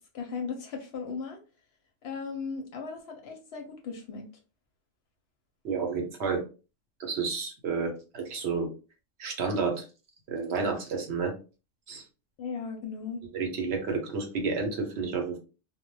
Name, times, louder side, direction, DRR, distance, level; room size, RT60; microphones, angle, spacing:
voice 1, 0.1-1.4 2.0-4.3 12.4-13.2, left 5 dB, 65° left, 3 dB, 0.7 m, -37 dB
voice 2, 5.6-6.4 7.0-8.7 9.2-9.9 10.3-11.3 11.9-12.0 13.3-15.4, right 4 dB, 65° right, 3 dB, 0.8 m, -30 dB
2.1 x 2.0 x 3.0 m, 0.33 s
omnidirectional pair, 1.3 m